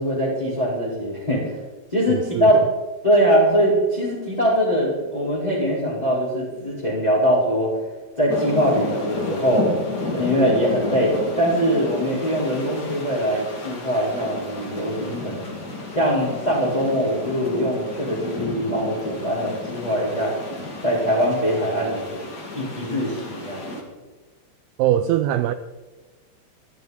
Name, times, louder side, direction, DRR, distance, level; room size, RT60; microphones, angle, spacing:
voice 1, 0.0-1.6 1.9-2.6 3.0-7.7 8.1-9.7 10.1-15.4 15.9-20.3 20.8-22.2 22.5-23.7, equal, 10° left, -9 dB, 4.3 m, -22 dB
voice 2, 2.1-2.5 24.8-25.5, right 12 dB, 90° right, 11 dB, 2.2 m, -21 dB
sound 1, 8.3-23.8, left 2 dB, 35° left, 1.8 m, -32 dB
24.5 x 12.0 x 4.1 m, 1.2 s
omnidirectional pair, 5.2 m